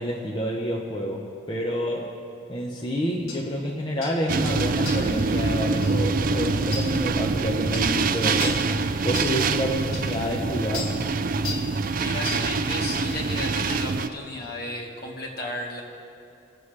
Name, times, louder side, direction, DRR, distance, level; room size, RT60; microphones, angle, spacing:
voice 1, 0.0-2.1 2.5-8.6 9.0-11.0, equal, 20° left, -3 dB, 0.9 m, -28 dB
sound 1, 3.3-3.4 4.0-4.2 4.9-5.1 5.8-6.0 6.7-6.9 7.7-7.9 8.4-8.7 9.1-9.4 9.9-10.0 10.7-11.0 11.4-11.7 12.2-12.5 13.0-13.1, left 4 dB, 80° left, 1.8 m, -34 dB
sound 2, 4.3-14.1, right 4 dB, 45° right, 0.4 m, -25 dB
voice 2, 11.9-15.8, left 2 dB, 50° left, 0 dB, 1.6 m, -34 dB
21.5 x 7.8 x 3.3 m, 2.7 s
head